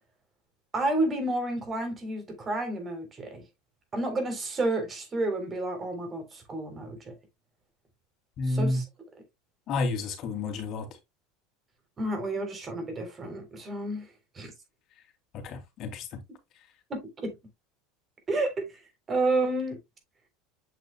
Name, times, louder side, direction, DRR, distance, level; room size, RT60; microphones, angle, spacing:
voice 1, 0.7-3.4 3.9-7.1 8.5-8.9 12.0-14.1 14.4-14.5 16.9-17.3 18.3-18.8 19.1-19.8, right 2 dB, 25° right, 3.7 m, -30 dB
voice 2, 8.4-8.8 9.7-10.9 15.3-16.1, left 2 dB, 50° left, 2.9 m, -30 dB
8.2 x 6.6 x 2.3 m
supercardioid pair, 105°, 0 cm